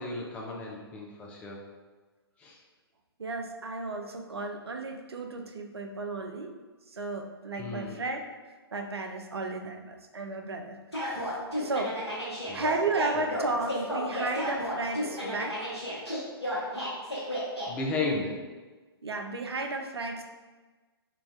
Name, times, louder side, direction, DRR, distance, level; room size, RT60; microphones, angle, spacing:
voice 1, 0.0-1.6 2.4-2.6 7.6-8.0 12.5-12.7 13.1-13.3 17.7-18.4, left 3 dB, 10° left, -2 dB, 0.3 m, -34 dB
voice 2, 3.2-6.5 6.9-12.0 12.5-15.7 19.0-20.2, right 3 dB, 75° right, 4 dB, 0.4 m, -34 dB
sound 1, 10.9-17.7, equal, 85° left, 1.1 m, -33 dB
3.9 x 2.3 x 2.4 m, 1.3 s
figure-of-eight pair, 120°, 13 cm